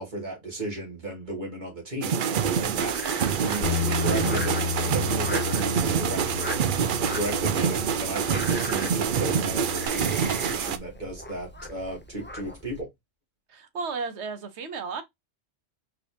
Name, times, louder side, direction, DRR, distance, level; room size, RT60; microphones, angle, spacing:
voice 1, 0.0-2.9 3.2-6.5 7.1-12.9, right 1 dB, 40° right, 2.3 m, -35 dB
sound 1, 2.0-10.8, right 7 dB, 55° right, 0.6 m, -26 dB
Frog, 2.5-12.8, left 2 dB, 15° left, 0.4 m, -39 dB
Bass guitar, 3.6-9.9, left 6 dB, 80° left, 1.6 m, -33 dB
voice 2, 13.5-15.0, right 4 dB, 75° right, 1.2 m, -33 dB
4.6 x 3.6 x 2.8 m
omnidirectional pair, 1.2 m